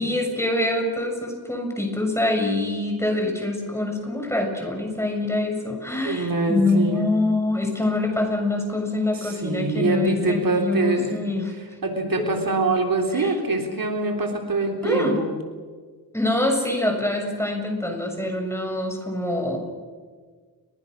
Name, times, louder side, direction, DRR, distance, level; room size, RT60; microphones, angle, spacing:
voice 1, 0.0-11.5 13.1-13.3 14.8-15.2 16.1-19.6, left 2 dB, 5° left, 2 dB, 6.8 m, -25 dB
voice 2, 6.0-7.1 9.1-11.2 11.8-15.3, right 2 dB, 60° right, 3 dB, 3.4 m, -24 dB
29.0 x 23.5 x 6.5 m, 1.5 s
wide cardioid pair, 85°, 38 cm